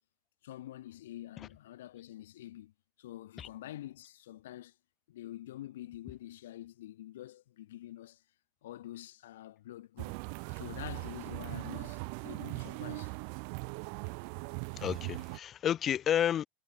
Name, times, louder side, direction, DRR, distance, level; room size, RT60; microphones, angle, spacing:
voice 1, 0.4-2.7 3.0-4.7 5.1-8.2 8.6-10.1 10.5-13.1, left 14 dB, 85° left, 0.8 m, -46 dB
sound 1, 10.0-15.4, right 40 dB or more, 65° right, 0.3 m, -40 dB
voice 2, 14.8-16.5, left 10 dB, 35° left, 0.4 m, -31 dB
supercardioid pair, 115°, 0 cm